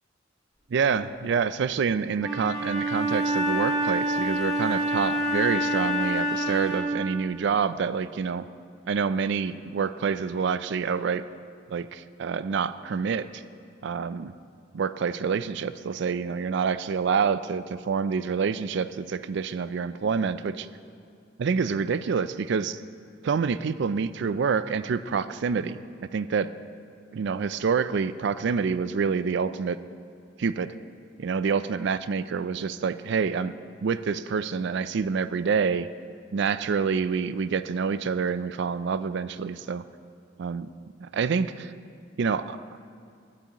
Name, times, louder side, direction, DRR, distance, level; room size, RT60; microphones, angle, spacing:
voice 1, 0.7-8.4 8.9-11.2 11.7-13.4 13.8-14.3 14.7-20.7 21.4-22.8 23.2-26.5 27.1-29.8 30.4-30.7 31.2-33.5 33.8-35.9 36.3-39.8 40.4-40.7 41.0-41.7 42.2-42.6, right 5 dB, 60° right, 14 dB, 0.4 m, -27 dB
Wind instrument woodwind instrument, 2.2-7.0, right 1 dB, ahead, 2.5 m, -27 dB
15.0 x 12.0 x 3.0 m, 2.3 s
head